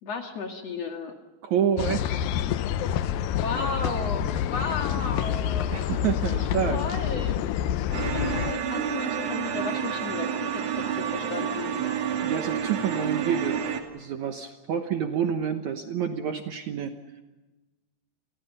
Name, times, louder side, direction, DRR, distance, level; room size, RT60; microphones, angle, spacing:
voice 1, 0.0-1.1 3.4-6.1 6.7-7.4 8.0-11.7, left 4 dB, 50° left, 4 dB, 2.6 m, -34 dB
voice 2, 1.4-2.3 5.7-6.8 12.2-13.6 13.9-16.9, right 8 dB, 65° right, 6 dB, 2.0 m, -28 dB
sound 1, 1.8-8.5, left 10 dB, 75° left, 2.4 m, -27 dB
sound 2, 7.9-13.8, right 8 dB, 45° right, 3.0 m, -29 dB
30.0 x 23.5 x 5.5 m, 1.1 s
omnidirectional pair, 4.5 m